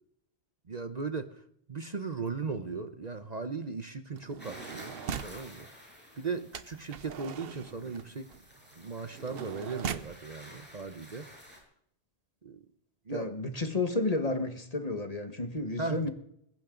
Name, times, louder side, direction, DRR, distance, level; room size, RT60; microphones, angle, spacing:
voice 1, 0.7-1.4 1.7-5.0 5.2-5.7 6.2-8.3 8.8-11.3 12.4-12.6 13.1-13.6 15.8-16.1, right 4 dB, 40° right, 9 dB, 0.9 m, -37 dB
sound 1, 4.1-5.4 6.5-10.2 11.0-11.1 11.3-11.6, right 7 dB, 60° right, 1.0 m, -41 dB
sound 2, 4.4-11.6, equal, 10° left, 6.1 m, -52 dB
voice 2, 13.1-16.1, left 2 dB, 35° left, 6 dB, 1.6 m, -31 dB
21.0 x 16.5 x 3.9 m, 0.72 s
omnidirectional pair, 1.2 m